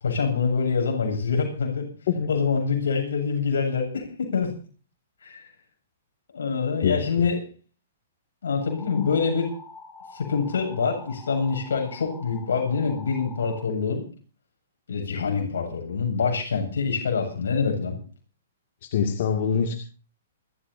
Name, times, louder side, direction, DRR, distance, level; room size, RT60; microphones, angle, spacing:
voice 1, 0.0-1.9 2.3-4.5 5.2-5.5 6.3-7.4 8.4-9.5 10.1-14.0 14.9-18.0, left 5 dB, 85° left, 3 dB, 7.8 m, -25 dB
voice 2, 6.8-7.3 18.8-19.8, left 7 dB, 55° left, 2 dB, 2.4 m, -25 dB
sound 1, 8.6-13.6, left 4 dB, 10° left, 4.7 m, -45 dB
28.5 x 14.0 x 2.8 m, 0.36 s
hypercardioid pair, 150°, 0 cm